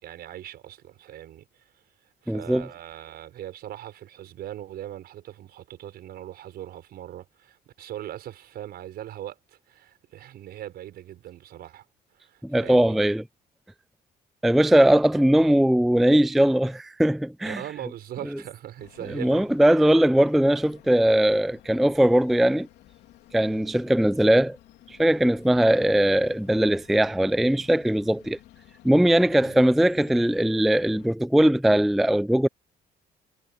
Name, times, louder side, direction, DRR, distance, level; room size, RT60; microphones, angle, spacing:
voice 1, 0.0-1.6 2.2-11.8 12.1-13.0 17.4-19.9 23.4-23.7 29.4-29.6, right 12 dB, 70° right, 6.2 m, -40 dB
voice 2, 2.3-2.7 12.4-13.2 14.4-17.6 19.1-22.7 23.3-24.6 24.9-28.4 28.8-32.5, right 1 dB, ahead, 0.3 m, -20 dB
sound 1, 18.8-31.1, left 15 dB, 85° left, 3.3 m, -53 dB
cardioid pair, 110°, 17 cm